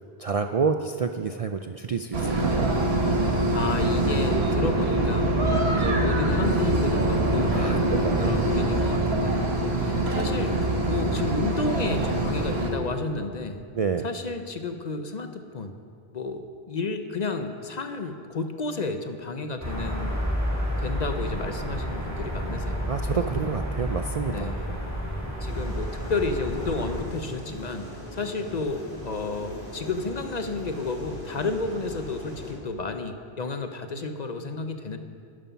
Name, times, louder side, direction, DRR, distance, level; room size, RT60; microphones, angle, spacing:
voice 1, 0.2-2.8 7.5-8.4 13.7-14.0 22.9-24.9, right 5 dB, 55° right, 6 dB, 0.4 m, -29 dB
sound 1, 2.1-12.7, right 2 dB, 80° right, 1.6 m, -24 dB
voice 2, 3.5-5.4 5.7-9.5 9.8-13.6 14.0-15.7 16.1-20.1 20.8-23.4 24.3-24.7 25.4-35.0, left 3 dB, 45° left, 7 dB, 0.8 m, -32 dB
sound 2, 19.6-27.0, equal, 15° right, 2.7 m, -30 dB
sound 3, 25.4-32.5, equal, 10° left, 3.0 m, -40 dB
11.5 x 11.0 x 5.7 m, 2.3 s
omnidirectional pair, 1.0 m